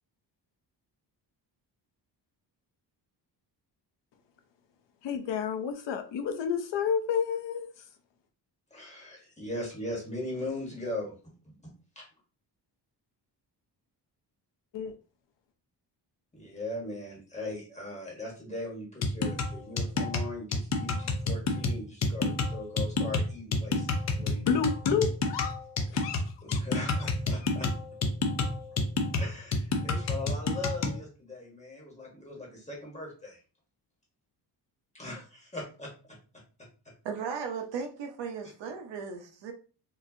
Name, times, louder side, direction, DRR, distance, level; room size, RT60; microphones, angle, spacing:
voice 1, 5.0-7.7 14.7-14.9 24.2-25.6 25.9-26.2 27.4-27.5, left 6 dB, 85° left, 0.8 m, -30 dB
voice 2, 8.7-11.1 11.4-12.1 16.3-24.4 26.4-27.7 29.2-33.4 34.9-36.2, left 2 dB, 15° left, 1.4 m, -39 dB
sound 1, 19.0-31.0, left 3 dB, 40° left, 0.6 m, -29 dB
voice 3, 37.0-39.5, right 6 dB, 85° right, 0.9 m, -36 dB
4.7 x 2.6 x 2.8 m
wide cardioid pair, 160°, 42 cm